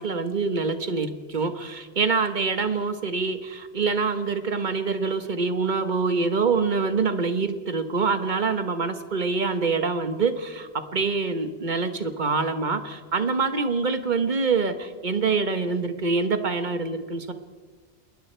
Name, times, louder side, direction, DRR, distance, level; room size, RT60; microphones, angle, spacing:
voice 1, 0.0-17.3, right 4 dB, 45° right, 9 dB, 1.4 m, -25 dB
28.0 x 21.0 x 4.5 m, 1.5 s
omnidirectional pair, 1.2 m